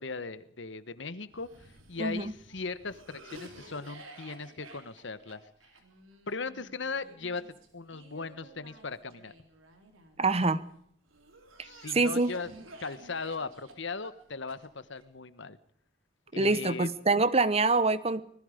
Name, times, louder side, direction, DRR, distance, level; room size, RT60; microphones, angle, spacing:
voice 1, 0.0-5.4 6.3-7.4 7.7-9.3 11.6-12.5 12.8-15.6 16.3-16.9, left 4 dB, 65° left, 14 dB, 1.2 m, -38 dB
Cough, 1.3-10.5 11.1-15.0, right 2 dB, 85° right, 3.8 m, -52 dB
voice 2, 2.0-2.3 10.2-10.6 11.9-12.3 16.3-18.2, right 3 dB, 30° right, 15 dB, 1.0 m, -25 dB
25.5 x 20.5 x 5.1 m, 0.64 s
head